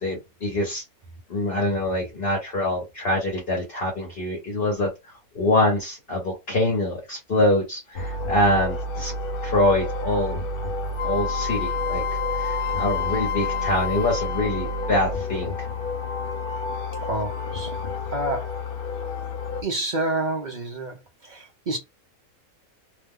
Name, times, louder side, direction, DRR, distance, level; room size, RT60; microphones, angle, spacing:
voice 1, 0.0-0.8 1.3-4.9 5.3-9.1 9.4-10.4 11.0-15.5, left 1 dB, 45° left, 1.2 m, -24 dB
sound 1, 7.9-19.6, left 1 dB, 65° left, 0.5 m, -30 dB
Wind instrument woodwind instrument, 11.0-15.1, left 10 dB, 85° left, 1.0 m, -29 dB
voice 2, 17.0-17.8 18.1-18.6 19.6-21.8, right 2 dB, 45° right, 0.6 m, -29 dB
2.8 x 2.2 x 3.6 m
omnidirectional pair, 1.5 m